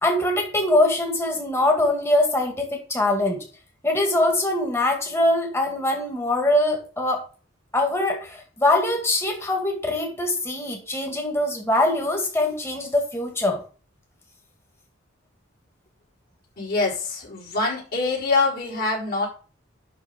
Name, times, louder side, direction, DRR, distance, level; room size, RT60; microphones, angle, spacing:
voice 1, 0.0-3.4 3.8-7.2 7.7-13.6, left 1 dB, 15° left, 2 dB, 2.1 m, -23 dB
voice 2, 16.6-19.3, left 3 dB, 50° left, -4 dB, 4.4 m, -24 dB
11.5 x 3.8 x 5.3 m, 0.36 s
head